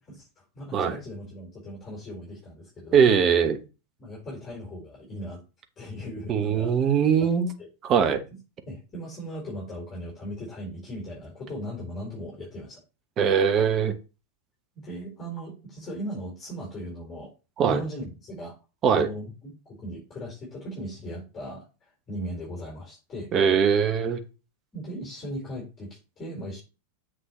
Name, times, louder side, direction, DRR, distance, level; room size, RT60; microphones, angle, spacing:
voice 1, 0.1-3.0 4.0-5.4 5.8-6.9 7.2-7.3 7.6-7.7 8.3-8.4 8.6-12.8 14.7-17.3 17.6-18.5 18.9-21.6 22.1-23.3 24.7-26.6, equal, 20° left, -3 dB, 4.4 m, -38 dB
voice 2, 2.9-3.6 6.3-7.5 7.9-8.2 13.2-13.9 17.6-17.8 18.8-19.1 23.3-24.2, right 7 dB, 30° right, 8 dB, 1.0 m, -21 dB
7.5 x 6.2 x 3.1 m, 0.31 s
figure-of-eight pair, 90°, 0 cm